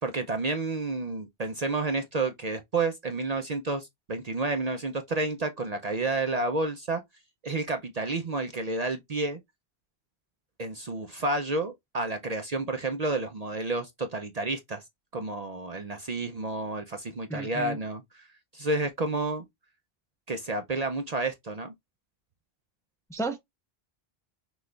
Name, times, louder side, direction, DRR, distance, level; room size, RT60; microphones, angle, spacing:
voice 1, 0.0-7.0 7.4-9.4 10.6-14.8 15.1-18.3 18.5-19.4 20.3-21.7, right 2 dB, 45° right, 0.6 m, -30 dB
voice 2, 17.3-17.8 23.1-23.4, right 2 dB, 5° left, 0.5 m, -32 dB
6.1 x 2.4 x 3.3 m
omnidirectional pair, 1.1 m